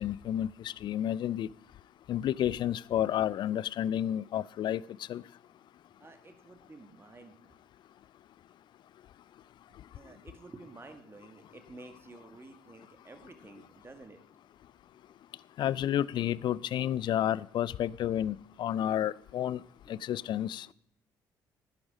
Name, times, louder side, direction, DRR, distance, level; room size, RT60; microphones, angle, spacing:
voice 1, 0.0-1.5 2.1-4.8 5.1-5.2 15.6-19.6 19.9-20.7, left 11 dB, 50° left, 23 dB, 0.4 m, -31 dB
voice 2, 6.0-7.5 9.9-14.2 19.9-20.1, right 3 dB, 25° right, 7 dB, 2.0 m, -51 dB
12.0 x 11.0 x 4.9 m, 0.68 s
figure-of-eight pair, 45°, 10 cm